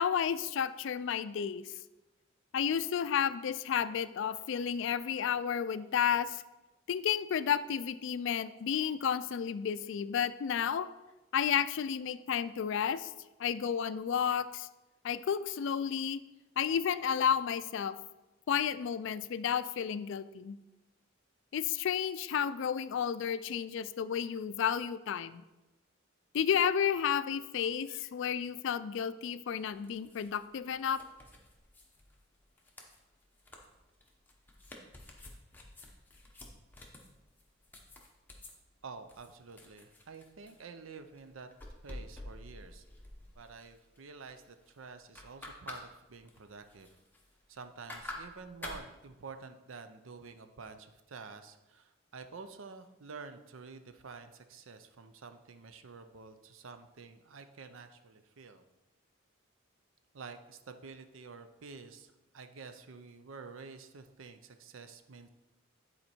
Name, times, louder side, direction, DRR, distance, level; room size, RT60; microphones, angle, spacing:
voice 1, 0.0-1.7 2.5-6.4 6.9-10.9 11.3-13.1 13.4-14.7 15.0-16.2 16.6-18.0 18.5-20.6 21.5-25.4 26.3-31.0, left 8 dB, 65° left, 14 dB, 0.3 m, -32 dB
sound 1, 29.6-38.5 39.1-40.6 41.1-44.0 44.3-44.7 44.9-45.8 46.1-47.6 47.9-48.8, left 1 dB, 10° left, 0.9 m, -49 dB
voice 2, 38.8-41.5 41.8-42.8 43.4-47.0 47.5-58.6 60.1-65.3, right 4 dB, 75° right, 9 dB, 0.6 m, -49 dB
9.6 x 4.3 x 4.4 m, 1.1 s
head